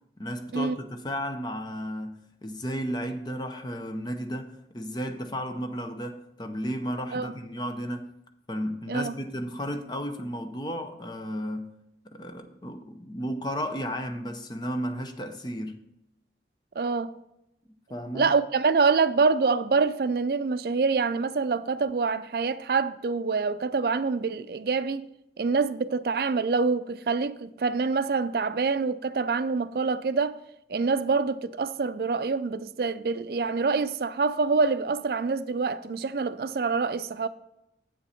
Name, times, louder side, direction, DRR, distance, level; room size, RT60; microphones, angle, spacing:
voice 1, 0.2-8.1 8.5-11.7 12.1-15.8 17.9-18.3, equal, 25° left, 0.6 m, -33 dB
voice 2, 16.8-17.1 18.1-25.1 25.4-30.4 30.7-37.3, right 4 dB, 60° right, 0.4 m, -26 dB
7.8 x 7.0 x 4.2 m
head